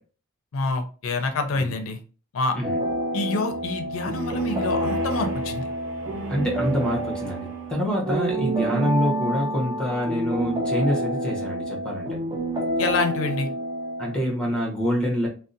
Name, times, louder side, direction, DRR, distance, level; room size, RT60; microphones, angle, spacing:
voice 1, 0.5-2.0 2.3-2.6 3.1-5.7 12.8-13.5, left 3 dB, 80° left, 6 dB, 0.4 m, -27 dB
sound 1, 2.6-14.2, right 1 dB, 20° right, 0.4 m, -28 dB
sound 2, 3.5-8.1, equal, 70° right, 0.6 m, -38 dB
voice 2, 6.3-12.2 14.0-15.3, equal, 5° left, -1 dB, 0.8 m, -26 dB
2.6 x 2.0 x 2.5 m, 0.37 s
head